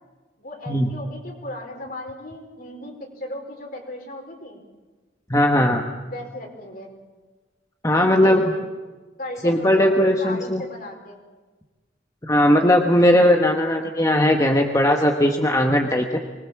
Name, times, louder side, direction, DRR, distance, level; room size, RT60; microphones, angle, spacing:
voice 1, 0.4-4.6 6.0-6.9 8.0-8.6 9.2-11.2, left 1 dB, 50° left, 1 dB, 4.7 m, -36 dB
voice 2, 5.3-5.8 7.8-8.4 9.4-10.6 12.2-16.2, left 1 dB, 20° left, 2 dB, 1.4 m, -18 dB
25.0 x 20.5 x 7.3 m, 1.2 s
head